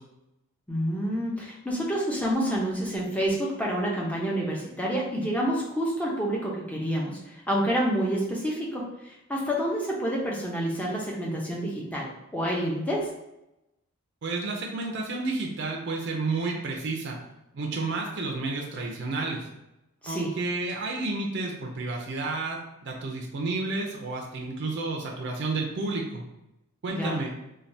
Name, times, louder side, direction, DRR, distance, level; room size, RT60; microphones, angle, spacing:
voice 1, 0.7-13.1 20.0-20.3 26.9-27.2, equal, 5° left, -3 dB, 0.5 m, -28 dB
voice 2, 14.2-17.2 17.5-19.4 20.1-26.2 26.8-27.3, right 3 dB, 55° right, 0 dB, 0.4 m, -31 dB
3.3 x 2.2 x 2.6 m, 0.90 s
head